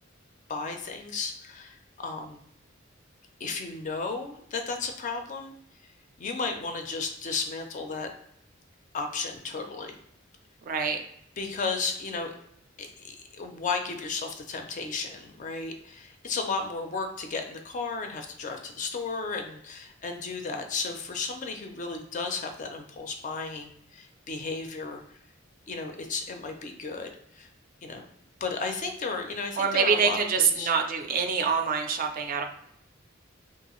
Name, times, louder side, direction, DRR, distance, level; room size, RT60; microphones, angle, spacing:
voice 1, 0.5-2.4 3.4-5.5 6.2-8.1 8.9-10.0 11.4-12.3 12.8-25.0 25.7-27.5 27.8-28.0 28.4-30.7, left 4 dB, 40° left, 5 dB, 0.4 m, -34 dB
voice 2, 10.7-11.0 29.6-32.5, right 6 dB, 45° right, 6 dB, 0.3 m, -25 dB
2.5 x 2.3 x 2.9 m, 0.71 s
head